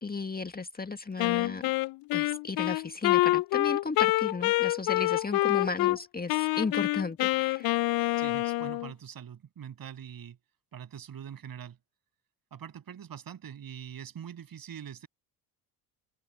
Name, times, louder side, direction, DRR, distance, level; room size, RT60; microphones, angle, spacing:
voice 1, 0.0-1.7 2.1-7.9, left 4 dB, 20° left, 2.0 m, -35 dB
Wind instrument woodwind instrument, 1.2-6.0 6.3-8.9, left 19 dB, 50° left, 0.6 m, -26 dB
voice 2, 8.2-10.4 10.7-11.8 12.5-15.1, right 8 dB, 45° right, 7.8 m, -43 dB
hypercardioid pair, 60°, 47 cm